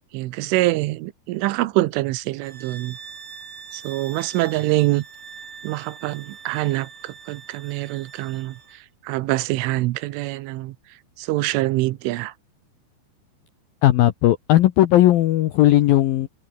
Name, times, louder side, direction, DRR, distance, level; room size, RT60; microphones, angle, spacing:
voice 1, 0.1-3.0 3.7-5.1 5.6-12.3, right 18 dB, 85° right, 3.4 m, -25 dB
sound 1, 2.4-8.8, right 6 dB, 45° right, 5.0 m, -43 dB
voice 2, 13.8-16.3, left 14 dB, 80° left, 2.1 m, -16 dB
omnidirectional pair, 5.6 m